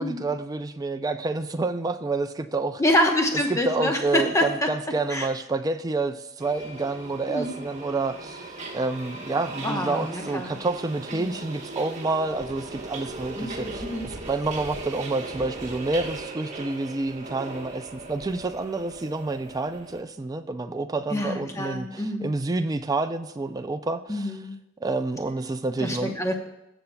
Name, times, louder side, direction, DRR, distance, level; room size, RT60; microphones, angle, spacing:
voice 1, 0.0-2.8 3.5-24.3 24.8-26.1, right 3 dB, 20° right, 8 dB, 0.3 m, -29 dB
voice 2, 2.8-4.7 5.1-5.3 7.3-7.6 9.6-10.5 11.1-11.3 13.3-14.1 21.1-22.3 24.1-24.6 25.8-26.3, left 1 dB, 15° left, 3 dB, 0.9 m, -26 dB
Subway metro underground, 6.4-20.0, right 2 dB, 35° right, 1.3 m, -38 dB
18.0 x 7.0 x 2.3 m, 0.91 s
head